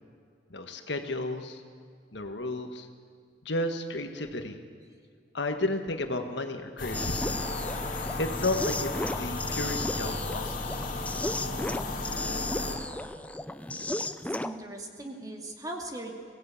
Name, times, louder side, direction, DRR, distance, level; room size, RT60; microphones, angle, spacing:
voice 1, 0.5-1.6 2.1-2.9 3.4-4.6 5.3-7.4 8.2-10.6, left 2 dB, 65° left, 6 dB, 1.7 m, -32 dB
sound 1, 6.8-12.7, left 2 dB, 45° left, 2.8 m, -34 dB
sound 2, 6.9-14.6, left 1 dB, 10° left, 0.5 m, -35 dB
voice 2, 14.0-16.1, right 1 dB, 20° right, 2 dB, 2.3 m, -40 dB
22.0 x 17.0 x 8.4 m, 2.2 s
head